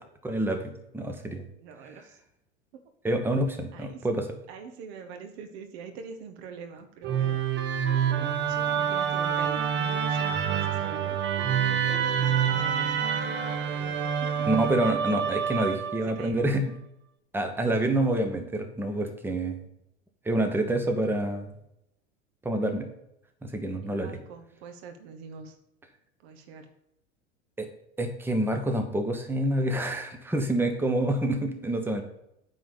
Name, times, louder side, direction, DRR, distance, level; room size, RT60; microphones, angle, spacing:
voice 1, 0.2-1.4 3.0-4.3 14.5-16.7 17.3-19.6 20.2-21.5 22.4-22.9 23.4-24.2 27.6-27.7 28.0-32.0, right 1 dB, 5° right, 5 dB, 1.2 m, -27 dB
voice 2, 1.6-2.2 2.7-2.8 3.7-4.1 4.5-7.5 7.8-11.2 11.5-14.5 15.2-15.3 15.9-16.4 17.6-17.7 23.8-25.5 26.2-26.7, right 6 dB, 55° right, 7 dB, 1.4 m, -44 dB
Musical instrument, 7.0-16.2, right 8 dB, 30° right, 1.1 m, -27 dB
9.2 x 4.0 x 6.9 m, 0.81 s
figure-of-eight pair, 85°, 38 cm